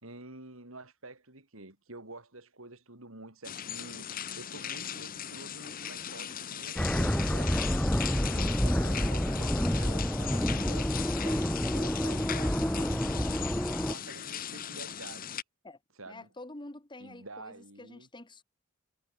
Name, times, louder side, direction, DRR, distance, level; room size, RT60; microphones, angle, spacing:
voice 1, 0.0-7.6 8.3-13.5 13.9-15.4 15.9-16.3 17.0-18.1, right 2 dB, 75° right, 4.9 m, -48 dB
sound 1, 3.4-15.4, left 9 dB, 45° left, 1.0 m, -39 dB
sound 2, 6.8-13.9, equal, 5° left, 0.6 m, -28 dB
voice 2, 16.1-18.4, left 2 dB, 20° left, 1.9 m, -47 dB
head